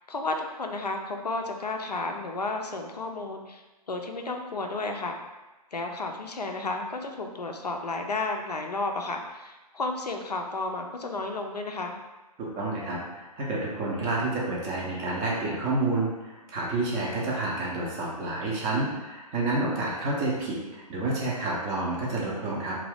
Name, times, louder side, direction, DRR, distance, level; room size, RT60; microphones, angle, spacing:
voice 1, 0.1-5.2 5.7-12.0, left 2 dB, 80° left, 4 dB, 0.4 m, -32 dB
voice 2, 12.4-22.8, right 2 dB, 15° right, -5 dB, 0.4 m, -29 dB
2.6 x 2.3 x 3.3 m, 1.1 s
figure-of-eight pair, 125°, 20 cm